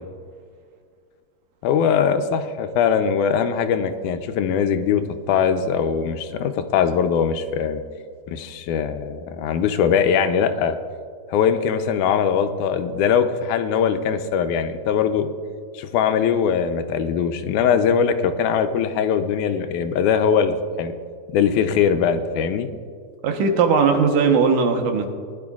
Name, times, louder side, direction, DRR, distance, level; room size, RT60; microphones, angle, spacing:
voice 1, 1.6-5.0 5.3-7.8 8.3-10.8 11.3-15.3 15.7-21.0 21.3-22.7, left 7 dB, 80° left, 8 dB, 2.1 m, -21 dB
voice 2, 23.2-25.1, right 5 dB, 90° right, 4 dB, 2.6 m, -18 dB
20.0 x 11.0 x 2.4 m, 2.1 s
omnidirectional pair, 3.5 m